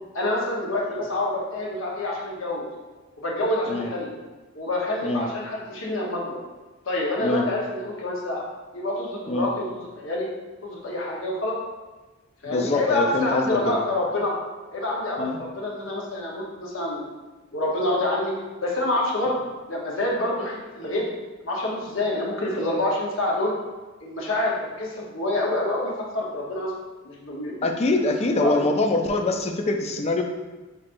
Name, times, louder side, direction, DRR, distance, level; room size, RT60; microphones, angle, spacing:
voice 1, 0.1-2.7 3.2-4.1 4.5-6.4 6.9-8.4 8.7-10.3 10.6-11.6 12.4-14.3 14.7-17.1 17.5-18.3 18.6-21.1 21.4-23.5 24.0-26.7 27.0-27.7 28.4-28.6, left 1 dB, 70° left, -3 dB, 1.0 m, -27 dB
voice 2, 12.5-13.8 15.2-15.4 27.6-30.2, left 2 dB, 30° left, 4 dB, 0.4 m, -24 dB
5.8 x 3.1 x 2.6 m, 1.2 s
head